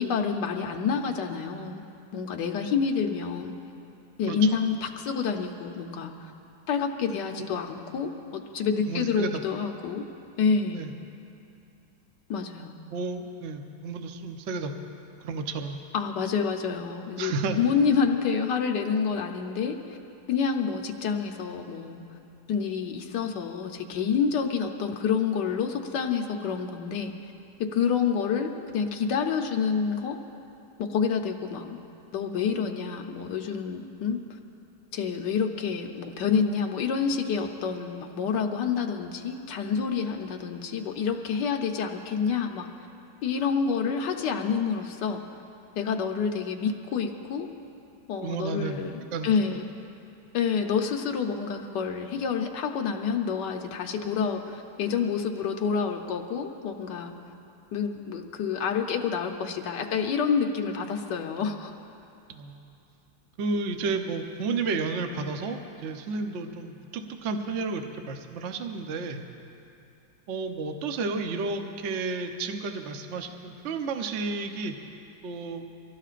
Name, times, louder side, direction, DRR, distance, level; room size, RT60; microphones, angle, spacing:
voice 1, 0.0-1.8 2.1-3.5 4.2-6.3 6.7-10.0 10.4-10.8 12.3-12.7 15.9-19.8 20.3-22.0 22.5-27.1 27.7-30.2 30.8-31.7 32.1-34.2 34.9-42.7 43.2-45.2 45.8-47.5 48.1-49.7 50.3-57.1 57.7-61.7, left 6 dB, 65° left, 4 dB, 1.4 m, -28 dB
voice 2, 4.3-4.6 7.4-7.5 8.9-9.4 10.7-10.9 12.9-15.8 17.2-17.6 48.2-48.8 49.1-49.6 62.3-62.7 63.4-69.2 70.3-74.8 75.2-75.7, right 4 dB, 55° right, 5 dB, 0.8 m, -32 dB
24.5 x 16.0 x 2.5 m, 2.7 s
omnidirectional pair, 2.1 m